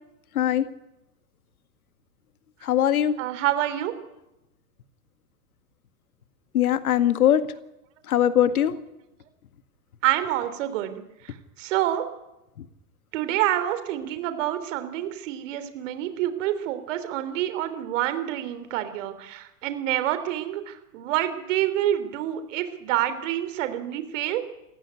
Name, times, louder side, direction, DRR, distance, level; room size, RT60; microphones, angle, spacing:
voice 1, 2.6-3.1 6.5-7.4 8.1-8.8, left 10 dB, 65° left, 12 dB, 2.0 m, -21 dB
voice 2, 3.2-3.9 10.0-12.1 13.1-24.4, right 13 dB, 50° right, 11 dB, 3.4 m, -27 dB
28.0 x 15.5 x 9.8 m, 0.92 s
figure-of-eight pair, 105°, 46 cm